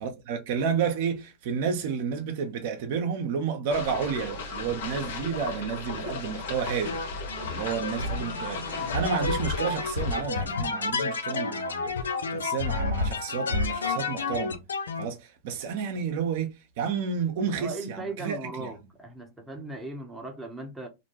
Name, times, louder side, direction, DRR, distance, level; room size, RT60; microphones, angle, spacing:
voice 1, 0.0-7.0 7.5-14.6 15.0-18.7, right 6 dB, 60° right, 0.6 m, -31 dB
sound 1, 3.7-10.2, left 4 dB, 70° left, 0.9 m, -37 dB
sound 2, 6.9-15.1, left 3 dB, 90° left, 0.4 m, -30 dB
voice 2, 17.4-20.9, right 2 dB, 10° right, 0.8 m, -38 dB
2.5 x 2.1 x 2.8 m
hypercardioid pair, 110°, 0 cm